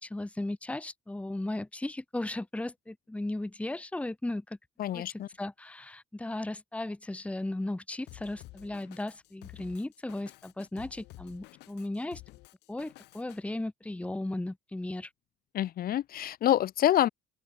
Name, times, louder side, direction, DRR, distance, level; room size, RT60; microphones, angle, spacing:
voice 1, 0.0-4.6 4.9-12.2 12.7-15.1, left 2 dB, 5° left, 1.3 m, -36 dB
voice 2, 4.8-5.3 15.5-17.1, left 12 dB, 60° left, 2.2 m, -26 dB
Drum kit, 8.1-13.4, left 20 dB, 90° left, 6.3 m, -51 dB
open air
cardioid pair, 110°, 17 cm